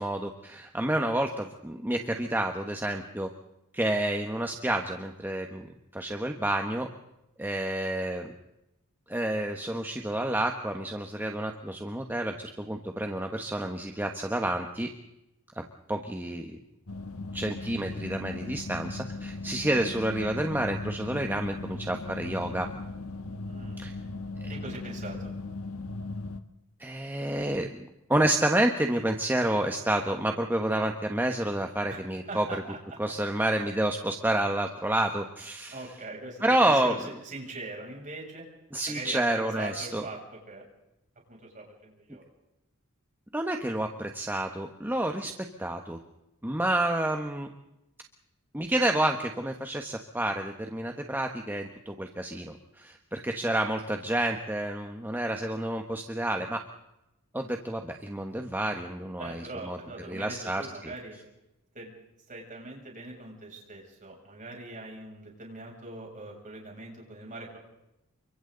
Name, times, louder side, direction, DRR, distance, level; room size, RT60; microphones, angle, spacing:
voice 1, 0.0-3.3 3.7-5.7 5.9-6.9 7.4-8.3 9.1-14.9 15.9-16.6 17.3-22.7 23.8-23.9 24.4-24.5 26.8-32.5 33.0-35.8 36.4-36.9 38.7-40.1 43.3-45.3 45.6-46.0 46.4-47.5 48.5-56.6 57.3-59.8 60.1-60.7, right 1 dB, 10° right, 3 dB, 1.3 m, -29 dB
sound 1, 16.9-26.4, left 3 dB, 75° left, 1.5 m, -38 dB
voice 2, 23.4-24.1 24.5-25.3 31.9-32.0 32.3-32.8 35.7-38.5 38.9-40.6 41.3-42.2 59.2-61.2 61.7-61.9 62.3-67.6, right 2 dB, 35° right, -1 dB, 7.4 m, -42 dB
29.5 x 24.5 x 4.0 m, 0.89 s
head